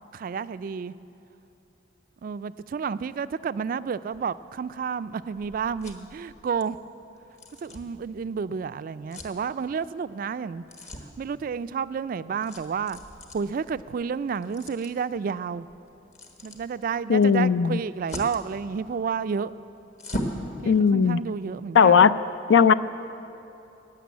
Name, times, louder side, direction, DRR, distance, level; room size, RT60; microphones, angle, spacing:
voice 1, 0.1-0.9 2.2-6.8 7.6-10.6 11.2-13.0 13.3-15.7 16.4-19.5 20.6-22.1, right 6 dB, 50° right, 15 dB, 0.3 m, -30 dB
sound 1, 4.1-20.5, equal, 40° left, 1.3 m, -42 dB
voice 2, 17.1-17.8 20.6-21.2 21.7-22.1 22.5-22.7, left 6 dB, 75° left, 14 dB, 0.4 m, -17 dB
15.5 x 6.8 x 9.3 m, 2.8 s
head